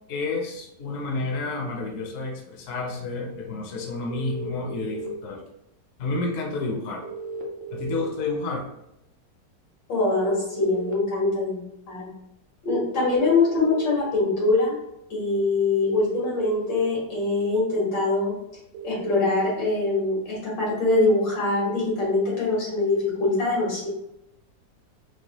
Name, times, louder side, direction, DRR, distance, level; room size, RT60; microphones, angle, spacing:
voice 1, 0.1-5.4 6.0-7.1 7.7-8.7, left 3 dB, 60° left, 1 dB, 0.9 m, -30 dB
sound 1, 4.1-5.1 7.0-8.0 10.0-10.9 12.9-13.9 15.8-16.8 18.7-19.1, right 3 dB, 65° right, 0.8 m, -35 dB
voice 2, 9.9-11.6 11.9-12.1 12.6-14.7 15.1-18.3 18.8-23.9, left 3 dB, 85° left, -5 dB, 2.3 m, -23 dB
4.7 x 2.2 x 2.9 m, 0.83 s
omnidirectional pair, 1.9 m